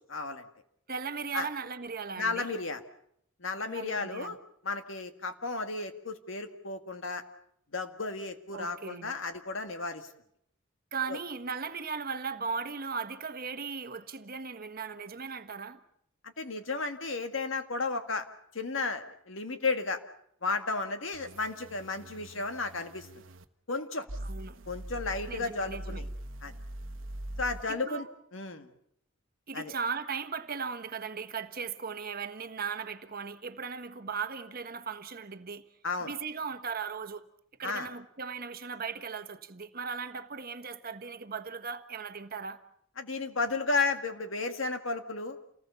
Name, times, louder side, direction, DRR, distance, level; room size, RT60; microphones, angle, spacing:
voice 1, 0.1-0.4 1.3-1.5 2.2-2.8 3.4-4.4 4.6-7.2 7.7-10.1 11.1-11.2 16.4-18.3 18.5-20.0 20.4-23.2 23.7-24.1 24.7-26.1 26.4-26.5 27.4-28.1 28.3-28.7 29.5-29.7 35.8-36.1 37.6-37.9 43.0-45.4, left 3 dB, 70° left, 1.9 m, -33 dB
voice 2, 0.9-2.6 3.7-4.3 8.5-9.1 10.9-15.8 24.2-24.6 25.3-26.0 27.7-28.1 29.5-35.6 36.0-37.2 37.6-42.6, right 5 dB, 45° right, 1.3 m, -37 dB
sound 1, 21.1-23.4 24.1-27.6, right 1 dB, 75° right, 1.2 m, -42 dB
28.5 x 19.0 x 7.0 m
head